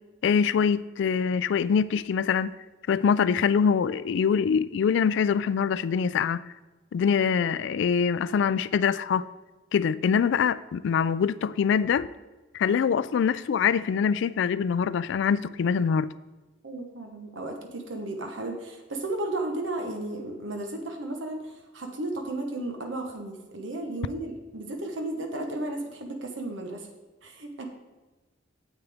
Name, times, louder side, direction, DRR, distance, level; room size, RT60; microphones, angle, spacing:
voice 1, 0.2-2.5 2.9-6.4 6.9-9.3 9.7-12.1 12.5-16.1, left 6 dB, 65° left, 0.3 m, -24 dB
voice 2, 16.6-26.9 27.2-27.6, right 2 dB, 70° right, 1.0 m, -34 dB
9.3 x 8.1 x 3.5 m
head